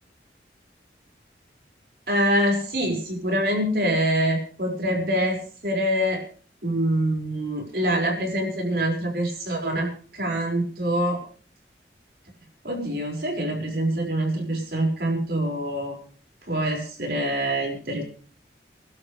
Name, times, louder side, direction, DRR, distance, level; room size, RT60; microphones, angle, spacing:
voice 1, 2.1-6.2 6.6-11.2 12.6-16.0 16.5-18.0, right 1 dB, 60° right, 1 dB, 5.7 m, -25 dB
28.0 x 12.0 x 3.4 m, 0.42 s
head